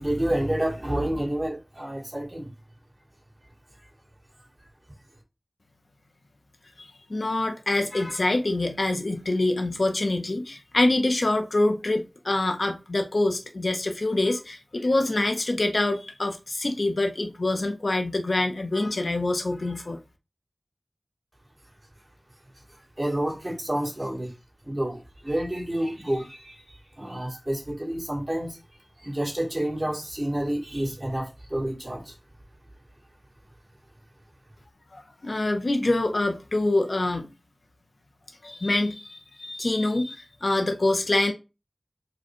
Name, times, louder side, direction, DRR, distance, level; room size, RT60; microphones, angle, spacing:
voice 1, 0.0-2.5 23.0-24.3 24.6-28.6 29.0-32.1, right 1 dB, 25° right, 2.0 m, -29 dB
voice 2, 6.8-20.0 34.9-37.3 38.4-41.3, left 2 dB, 70° left, 0.6 m, -25 dB
4.8 x 2.2 x 4.4 m
wide cardioid pair, 55°, 0 cm